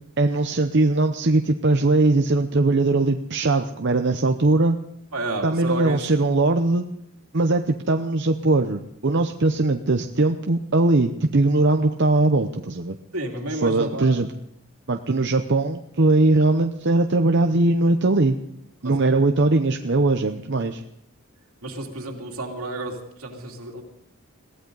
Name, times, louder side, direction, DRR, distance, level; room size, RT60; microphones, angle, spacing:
voice 1, 0.2-4.8 5.4-6.8 7.3-13.0 13.5-14.3 14.9-18.4 18.8-20.8, right 2 dB, 55° right, 5 dB, 0.8 m, -20 dB
voice 2, 5.1-6.1 13.1-14.2 18.8-19.2 21.6-23.8, right 2 dB, 80° right, 2 dB, 2.8 m, -31 dB
22.0 x 16.0 x 4.0 m, 0.73 s
head